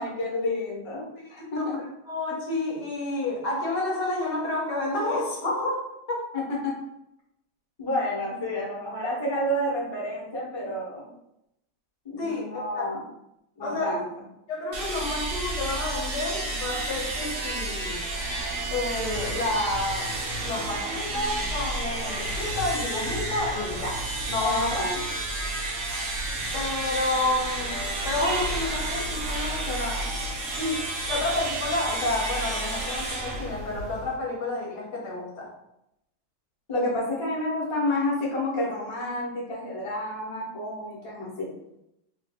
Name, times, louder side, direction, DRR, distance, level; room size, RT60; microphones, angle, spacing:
voice 1, 0.0-1.8 6.3-6.7 7.8-11.1 12.0-13.0 13.6-14.1 24.4-25.0 36.7-41.5, left 1 dB, 25° left, -5 dB, 0.6 m, -29 dB
voice 2, 1.2-1.8 2.1-5.8 6.1-6.2 12.2-12.9 13.6-13.9 14.5-18.0 18.7-20.2 20.4-24.7 26.5-30.1 30.6-35.5, left 2 dB, 65° left, -1 dB, 1.2 m, -30 dB
sound 1, 14.7-34.2, right 2 dB, 60° right, 0.9 m, -31 dB
3.1 x 2.5 x 3.4 m, 0.82 s
omnidirectional pair, 2.1 m